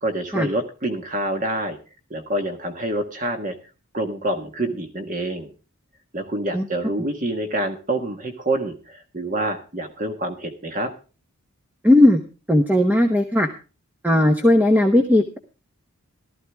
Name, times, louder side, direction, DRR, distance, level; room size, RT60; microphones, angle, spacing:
voice 1, 0.0-1.8 2.1-3.5 3.9-5.5 6.1-10.9, right 1 dB, 35° right, 5 dB, 1.5 m, -27 dB
voice 2, 11.8-12.2 12.5-13.5 14.0-15.4, left 1 dB, 10° right, 5 dB, 1.0 m, -16 dB
15.0 x 13.5 x 3.5 m, 0.34 s
head